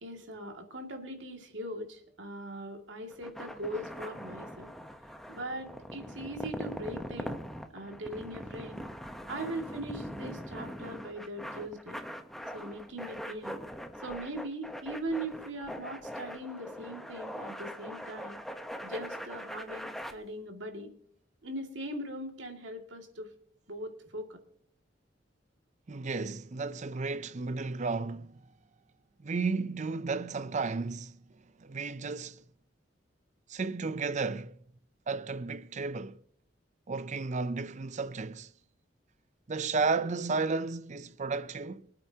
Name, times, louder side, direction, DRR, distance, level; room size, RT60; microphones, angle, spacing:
voice 1, 0.0-4.7 5.3-7.4 7.7-8.8 9.3-12.0 12.5-13.6 14.0-18.4 18.8-20.9 21.4-23.3 23.7-24.4, right 1 dB, 80° right, 2.3 m, -40 dB
sound 1, 3.1-20.1, equal, ahead, 0.9 m, -42 dB
voice 2, 25.9-28.4 29.2-31.2 31.6-32.4 33.5-34.6 35.1-36.2 36.9-38.5 39.5-41.9, right 4 dB, 40° right, 0.5 m, -33 dB
24.0 x 8.9 x 2.9 m
head